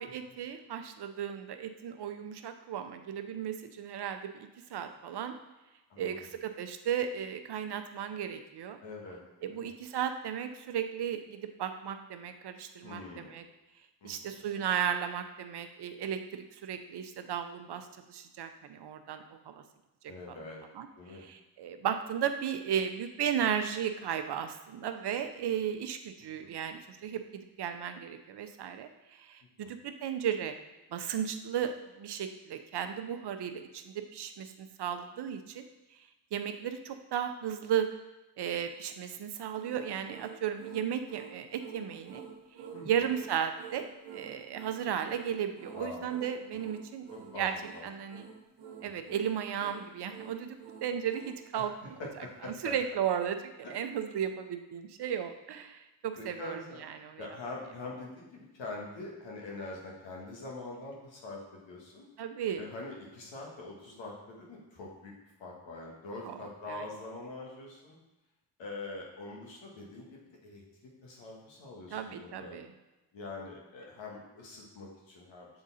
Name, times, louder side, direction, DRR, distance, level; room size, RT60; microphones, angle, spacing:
voice 1, 0.0-5.3 6.0-8.8 9.4-13.4 14.0-19.6 20.3-20.4 20.7-20.9 21.2-30.5 30.9-35.7 36.3-37.9 38.4-42.2 42.8-47.5 47.8-48.3 48.8-52.0 52.4-57.2 62.2-62.7 66.2-66.4 66.7-66.8 71.9-72.7, right 9 dB, 60° right, 8 dB, 0.8 m, -35 dB
voice 2, 5.9-6.3 8.8-9.2 9.5-9.7 12.8-13.4 14.0-14.4 20.1-20.6 21.0-21.3 26.4-26.5 29.6-29.7 42.7-42.9 45.7-46.1 47.1-47.9 51.5-51.7 52.0-52.7 56.1-56.8 57.2-62.1 62.6-65.1 65.4-68.0 68.6-72.5 73.1-75.5, left 2 dB, 80° left, -2 dB, 1.8 m, -44 dB
sound 1, 39.6-51.4, right 7 dB, 80° right, 1.2 m, -48 dB
7.0 x 3.8 x 4.1 m, 1.0 s
supercardioid pair, 50°, 44 cm